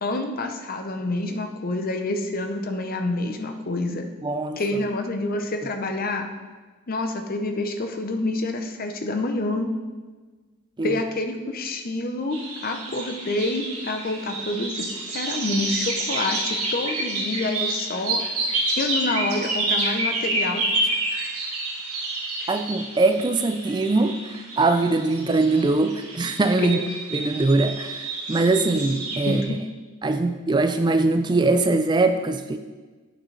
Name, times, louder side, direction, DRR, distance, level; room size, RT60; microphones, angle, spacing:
voice 1, 0.0-4.1 4.6-6.3 6.9-9.7 10.8-18.2 18.8-20.9 22.4-22.6 26.6-26.9 29.3-29.6, left 2 dB, 40° left, 5 dB, 0.6 m, -28 dB
voice 2, 4.2-4.6 10.8-10.9 22.5-26.8 27.1-29.6 30.0-32.6, right 3 dB, 20° right, 8 dB, 0.3 m, -22 dB
sound 1, 12.3-29.4, right 2 dB, 85° right, 1.7 m, -29 dB
8.8 x 6.1 x 3.2 m, 1.3 s
head